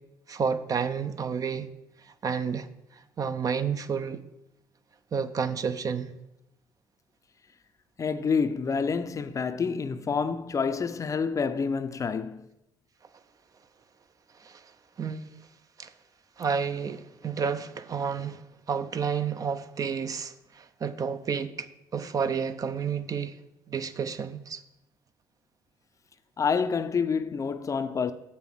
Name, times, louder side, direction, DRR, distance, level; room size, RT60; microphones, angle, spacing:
voice 1, 0.3-1.7 2.2-2.7 3.2-4.2 5.1-6.1 14.4-14.6 15.0-15.3 15.8-15.9 16.4-18.4 18.7-21.7 21.9-23.3 23.7-24.6, right 6 dB, 40° right, 0.6 m, -30 dB
voice 2, 8.0-12.5 26.4-28.1, left 5 dB, 35° left, 0.5 m, -28 dB
6.8 x 5.7 x 6.1 m
hypercardioid pair, 60°, 9 cm